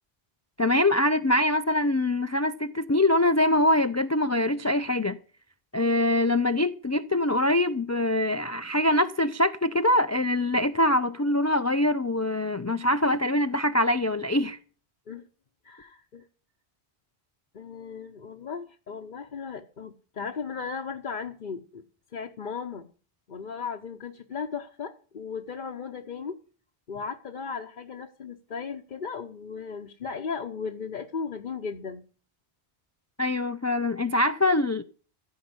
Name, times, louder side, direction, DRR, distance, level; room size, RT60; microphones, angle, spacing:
voice 1, 0.6-5.2 5.7-14.6 33.2-34.8, left 1 dB, 25° left, 0.4 m, -24 dB
voice 2, 15.6-16.2 17.5-21.8 22.1-22.9 23.3-26.4 26.9-32.0, left 5 dB, 50° left, 1.0 m, -36 dB
14.5 x 5.7 x 9.6 m
omnidirectional pair, 1.1 m